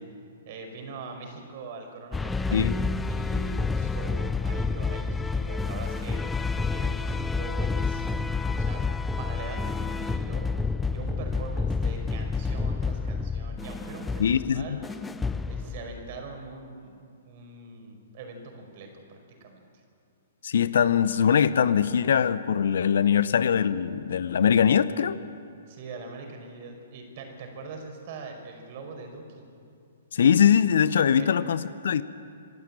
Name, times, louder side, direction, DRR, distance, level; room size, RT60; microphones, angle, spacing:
voice 1, 0.5-2.7 3.0-8.2 8.5-8.8 9.2-10.5 10.9-14.8 15.4-17.0 17.2-19.6 25.7-29.4 31.2-31.3, right 3 dB, 45° right, 3 dB, 5.3 m, -42 dB
sound 1, 2.1-16.2, left 4 dB, 10° left, 0.6 m, -29 dB
voice 2, 14.2-14.8 20.4-25.2 30.1-32.0, left 8 dB, 65° left, 15 dB, 0.8 m, -22 dB
26.5 x 12.0 x 9.0 m, 2.4 s
figure-of-eight pair, 120°, 0 cm